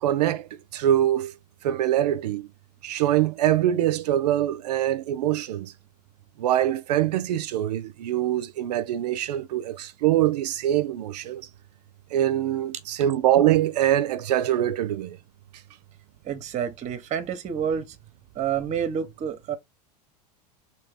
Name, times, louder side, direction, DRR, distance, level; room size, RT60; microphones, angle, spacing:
voice 1, 0.0-1.3 1.6-2.5 2.8-5.7 6.4-11.4 12.1-15.2, right 12 dB, 75° right, 0.6 m, -24 dB
voice 2, 16.2-18.0 18.3-19.6, right 8 dB, 35° right, 0.9 m, -29 dB
3.3 x 2.8 x 3.5 m
hypercardioid pair, 95°, 21 cm